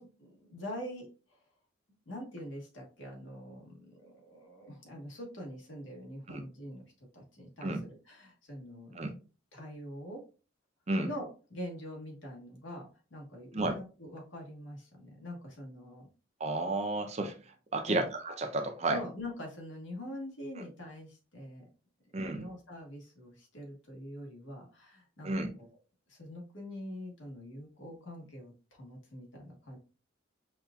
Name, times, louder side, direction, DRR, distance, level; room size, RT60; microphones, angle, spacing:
voice 1, 0.0-1.4 2.1-6.9 7.1-9.1 9.5-10.2 11.0-16.1 17.9-18.1 18.9-21.6 22.3-25.3 25.6-25.7 26.1-29.8, equal, 75° left, 1.3 m, -44 dB
voice 2, 16.4-17.3 17.7-19.0 22.1-22.5 25.2-25.5, right 2 dB, 35° right, 0.5 m, -32 dB
5.6 x 2.4 x 2.2 m
head